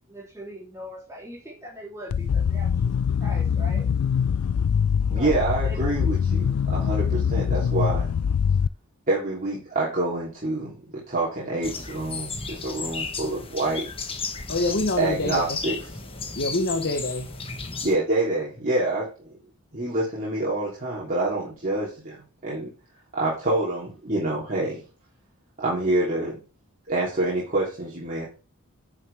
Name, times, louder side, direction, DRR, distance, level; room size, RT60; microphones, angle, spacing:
voice 1, 0.1-2.9 3.2-3.9 5.1-5.4 5.6-6.0, equal, 15° right, 3.2 m, -40 dB
sound 1, 2.1-8.7, left 7 dB, 75° left, 0.4 m, -23 dB
voice 2, 5.1-8.1 9.1-10.8 11.1-13.9 15.0-15.7 17.8-19.1 19.7-22.7 23.1-24.8 25.6-26.4 26.9-28.3, right 2 dB, 35° right, 3.3 m, -26 dB
sound 2, 11.6-18.0, left 4 dB, 25° left, 1.1 m, -34 dB
voice 3, 14.5-15.6 16.2-17.3, left 2 dB, 50° left, 1.0 m, -26 dB
10.5 x 6.4 x 3.5 m
head